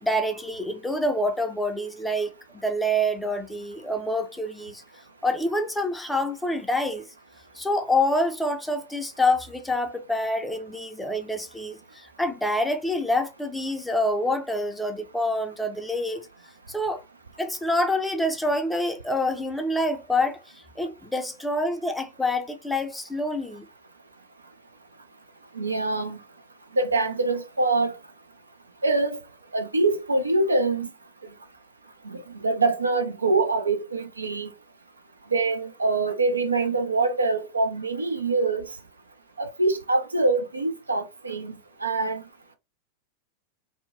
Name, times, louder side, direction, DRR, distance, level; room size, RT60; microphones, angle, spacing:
voice 1, 0.0-4.8 5.2-7.1 7.5-16.3 16.7-17.0 17.4-23.7, left 1 dB, 5° left, 0.4 m, -27 dB
voice 2, 25.5-26.2 26.7-27.9 28.8-29.2 29.5-30.9 32.0-34.5 35.3-38.6 39.4-42.2, right 3 dB, 75° right, 0.4 m, -24 dB
2.7 x 2.1 x 2.5 m
figure-of-eight pair, 90°, 0 cm